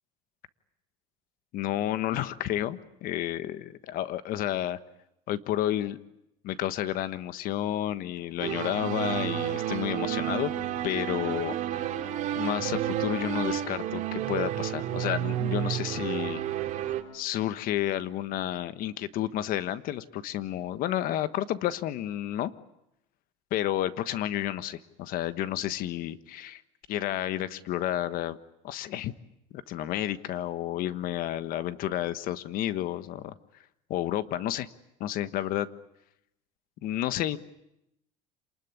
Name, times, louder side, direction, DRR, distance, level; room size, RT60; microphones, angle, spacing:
voice 1, 1.5-4.8 5.3-6.0 6.4-10.5 10.8-11.9 12.3-16.4 17.1-22.5 23.5-26.6 26.9-28.4 28.6-29.1 29.5-33.3 33.9-34.7 35.0-35.7 36.8-37.4, left 12 dB, 60° left, 13 dB, 1.3 m, -31 dB
sound 1, 8.4-17.0, right 11 dB, 55° right, 3.2 m, -31 dB
27.5 x 20.5 x 9.7 m, 0.85 s
supercardioid pair, 110°, 16 cm